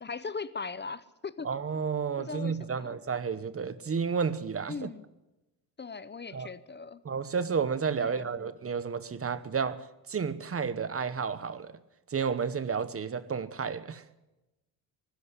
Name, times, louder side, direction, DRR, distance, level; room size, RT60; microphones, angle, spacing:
voice 1, 0.0-1.5 2.2-3.0 4.7-5.0 5.8-7.0 8.0-8.5, left 4 dB, 30° left, 0.7 m, -39 dB
voice 2, 1.4-4.9 6.3-6.5 7.0-11.7 12.1-14.0, right 6 dB, 35° right, 1.0 m, -31 dB
21.0 x 13.0 x 9.8 m
cardioid pair, 120°, 37 cm